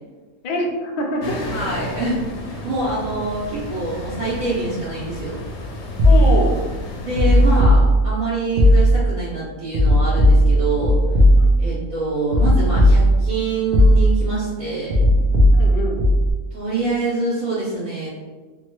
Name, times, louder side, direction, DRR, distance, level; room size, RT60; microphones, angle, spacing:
voice 1, 0.4-1.4 6.0-6.6 11.3-11.5 15.5-16.0, left 2 dB, 90° left, 0 dB, 0.4 m, -24 dB
sound 1, 1.2-7.6, left 1 dB, 60° left, 0.7 m, -32 dB
voice 2, 1.5-5.4 7.0-11.0 11.6-15.0 16.5-18.1, right 2 dB, 70° right, -11 dB, 1.5 m, -25 dB
sound 2, 6.0-6.6 7.2-8.2 8.6-9.2 9.7-11.8 12.3-13.4 13.7-14.4 14.9-16.3, equal, 55° right, 0.6 m, -15 dB
3.2 x 2.2 x 3.0 m, 1.4 s
omnidirectional pair, 1.5 m